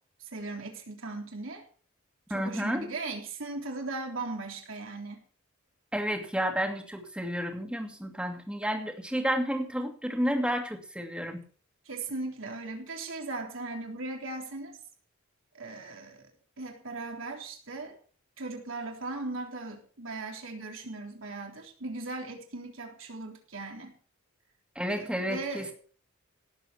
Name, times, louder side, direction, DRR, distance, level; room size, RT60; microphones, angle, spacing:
voice 1, 0.2-1.6 2.3-5.2 11.9-14.8 15.5-16.3 16.6-18.0 18.4-23.9 24.9-25.7, right 3 dB, 70° right, 2 dB, 3.6 m, -38 dB
voice 2, 2.3-2.9 5.9-11.4 24.8-25.7, equal, 5° right, 4 dB, 2.4 m, -31 dB
17.5 x 8.0 x 5.8 m, 0.43 s
head